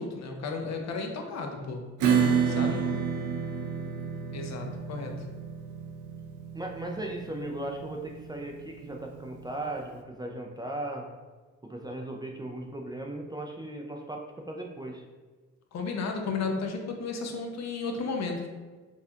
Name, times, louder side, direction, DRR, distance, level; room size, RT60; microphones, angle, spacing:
voice 1, 0.0-1.9 2.5-2.8 4.3-5.3 15.7-18.5, left 4 dB, 60° left, 3 dB, 0.7 m, -33 dB
Acoustic guitar / Strum, 2.0-9.2, right 7 dB, 75° right, 0.5 m, -30 dB
voice 2, 2.1-2.8 6.5-11.1 11.6-15.0, right 1 dB, 15° right, 0 dB, 0.4 m, -37 dB
4.2 x 2.3 x 2.8 m, 1.3 s
cardioid pair, 90°, 30 cm